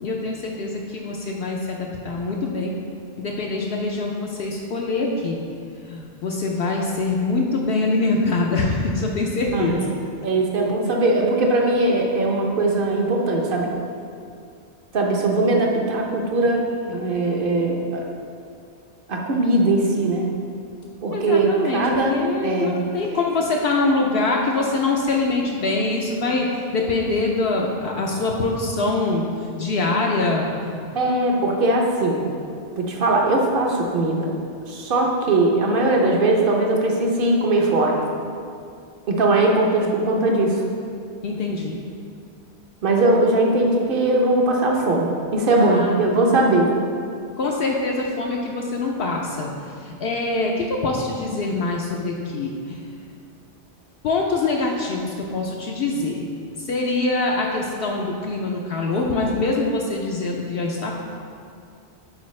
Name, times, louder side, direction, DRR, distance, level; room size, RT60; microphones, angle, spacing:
voice 1, 0.0-2.7 3.2-5.4 5.8-9.8 21.1-21.8 22.1-30.8 41.2-41.8 45.6-46.0 47.4-49.5 49.8-53.0 54.0-56.3 56.6-60.9, left 3 dB, 70° left, -1 dB, 0.8 m, -24 dB
voice 2, 9.5-9.8 10.2-13.7 14.9-18.0 19.1-20.3 21.0-22.2 22.4-22.8 30.9-32.2 32.8-34.3 34.7-38.0 39.1-40.6 42.8-46.7, right 2 dB, 55° right, 0 dB, 0.9 m, -20 dB
8.6 x 4.3 x 3.2 m, 2.4 s
omnidirectional pair, 1.1 m